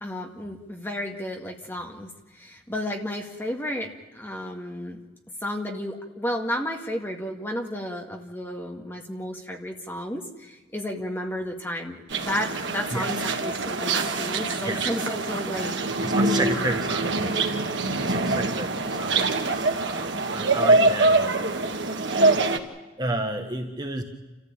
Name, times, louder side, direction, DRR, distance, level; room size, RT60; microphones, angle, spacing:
voice 1, 0.0-5.0 5.4-17.0, left 1 dB, 10° left, 2 dB, 2.0 m, -33 dB
sound 1, 12.1-22.6, right 3 dB, 65° right, 1.7 m, -24 dB
voice 2, 12.9-13.2 14.6-15.0 16.0-17.5 18.0-21.5 23.0-24.0, right 1 dB, 20° right, 4 dB, 1.4 m, -32 dB
28.5 x 14.5 x 8.9 m, 1.2 s
head